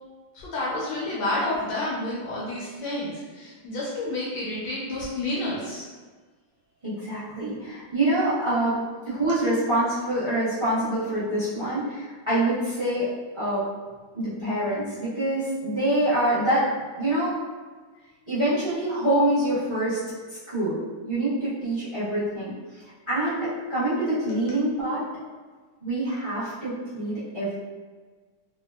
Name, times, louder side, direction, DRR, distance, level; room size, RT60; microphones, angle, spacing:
voice 1, 0.3-5.9, left 1 dB, 70° left, -6 dB, 1.2 m, -30 dB
voice 2, 6.8-13.7 14.1-16.7 17.0-17.4 18.3-20.0 20.3-22.5 23.1-25.1 25.8-27.5, right 1 dB, 30° right, -14 dB, 0.5 m, -26 dB
3.4 x 2.1 x 2.2 m, 1.4 s
omnidirectional pair, 2.3 m